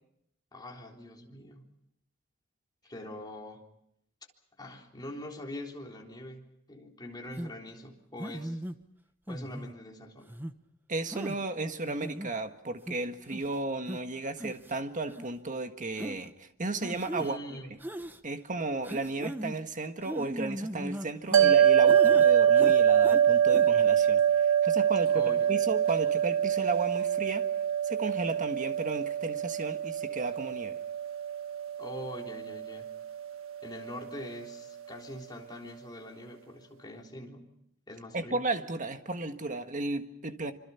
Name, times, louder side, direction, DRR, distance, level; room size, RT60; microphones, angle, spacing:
voice 1, 0.5-1.6 2.8-3.6 4.6-8.6 9.3-10.4 17.2-17.7 25.1-25.5 31.8-32.9 33.6-37.4 37.9-38.5, left 1 dB, 20° left, 0 dB, 3.7 m, -43 dB
sound 1, 7.4-7.5 8.2-8.8 9.3-9.7 10.3-10.5 11.1-11.4 11.9-12.3 12.9-13.0 13.3-13.5 13.9-14.0 14.4-14.7 15.1-15.3 16.0-16.2 16.8-17.3 17.8-18.2 18.8-19.6 20.0-21.6 21.9-22.3 22.6-23.2 23.5-23.7, equal, 10° right, 1.0 m, -38 dB
voice 2, 10.9-17.6 18.2-27.5 27.8-30.8 38.1-40.5, right 2 dB, 40° right, 7 dB, 1.6 m, -34 dB
sound 2, 21.3-33.8, right 9 dB, 80° right, 1.5 m, -25 dB
26.5 x 26.0 x 5.8 m, 0.76 s
head